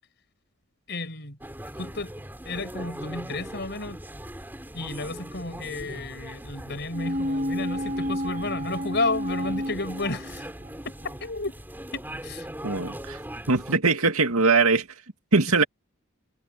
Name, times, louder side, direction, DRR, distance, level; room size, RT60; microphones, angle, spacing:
voice 1, 0.9-1.4 1.8-2.1 2.4-4.0 4.7-10.5 10.8-11.5 11.9-12.5, left 2 dB, 50° left, 6.2 m, -32 dB
sound 1, 1.4-13.8, right 1 dB, 10° right, 4.1 m, -40 dB
sound 2, 6.9-10.7 11.0-11.1, equal, 35° right, 2.8 m, -31 dB
voice 2, 12.6-13.2 13.5-14.9 15.3-15.6, right 4 dB, 85° right, 2.2 m, -21 dB
head